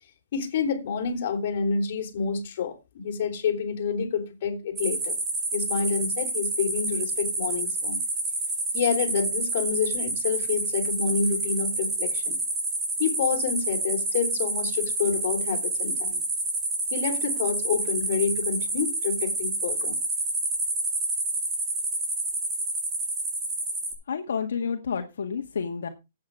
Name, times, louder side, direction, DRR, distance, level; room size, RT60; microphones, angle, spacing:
voice 1, 0.3-5.2 5.5-8.0 8.7-12.4 13.0-16.2 16.9-20.0, left 6 dB, 50° left, 4.0 m, -28 dB
sound 1, 4.7-23.9, right 2 dB, 15° right, 5.8 m, -28 dB
voice 2, 24.1-25.9, left 6 dB, 80° left, 1.9 m, -30 dB
11.5 x 8.8 x 4.8 m
hypercardioid pair, 155°, 0 cm